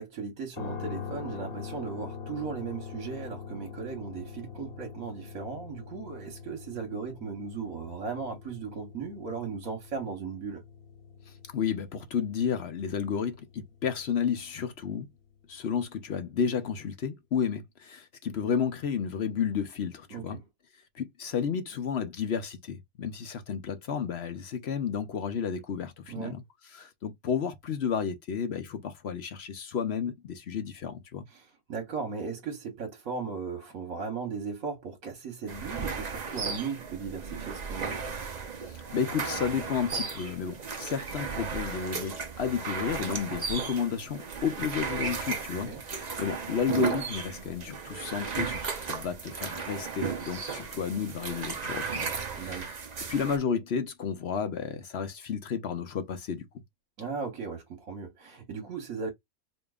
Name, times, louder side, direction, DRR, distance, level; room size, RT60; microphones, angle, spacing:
voice 1, 0.0-10.6 20.1-20.4 26.1-26.3 31.3-38.0 45.6-45.8 52.3-52.7 57.0-59.1, right 5 dB, 70° right, 1.5 m, -37 dB
sound 1, 0.6-14.6, left 6 dB, 90° left, 1.5 m, -43 dB
voice 2, 11.5-15.1 15.5-20.4 21.0-26.4 26.7-31.3 38.7-52.1 52.4-52.8 53.1-56.5, left 7 dB, 55° left, 0.8 m, -32 dB
sound 2, 35.5-53.4, right 5 dB, 40° right, 0.6 m, -35 dB
5.1 x 2.7 x 2.4 m
omnidirectional pair, 1.5 m